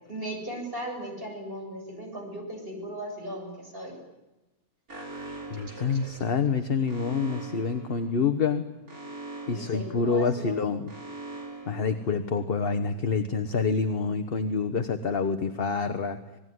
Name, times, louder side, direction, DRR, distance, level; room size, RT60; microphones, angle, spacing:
voice 1, 0.1-3.9 9.5-10.6, right 1 dB, 35° right, 1 dB, 7.9 m, -37 dB
Alarm, 4.9-12.7, right 2 dB, 70° right, 5.4 m, -43 dB
voice 2, 5.5-8.7 9.5-10.9 11.7-16.2, left 5 dB, 40° left, 8 dB, 1.2 m, -27 dB
27.0 x 20.0 x 9.5 m, 1.0 s
omnidirectional pair, 1.6 m